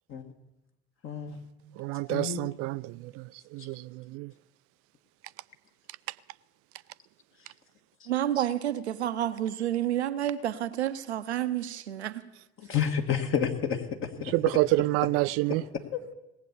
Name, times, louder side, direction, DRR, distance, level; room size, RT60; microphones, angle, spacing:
voice 1, 1.0-1.4 2.1-2.4 12.6-14.3 15.9-16.0, left 8 dB, 40° left, 1.8 m, -30 dB
voice 2, 1.8-3.2 3.5-4.3 14.3-15.6, right 20 dB, 45° right, 0.4 m, -28 dB
voice 3, 8.1-12.2, right 12 dB, 80° right, 0.8 m, -29 dB
18.5 x 8.1 x 7.1 m
figure-of-eight pair, 70°, 33 cm